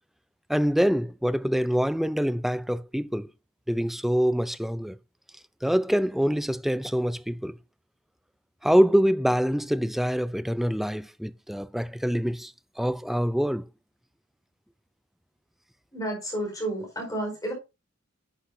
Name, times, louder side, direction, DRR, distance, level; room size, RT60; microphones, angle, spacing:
voice 1, 0.5-3.3 3.7-5.0 5.6-7.6 8.6-12.5 12.8-13.6, equal, ahead, 0.4 m, -25 dB
voice 2, 15.9-17.5, right 1 dB, 15° left, 4.7 m, -31 dB
10.0 x 8.1 x 2.7 m
head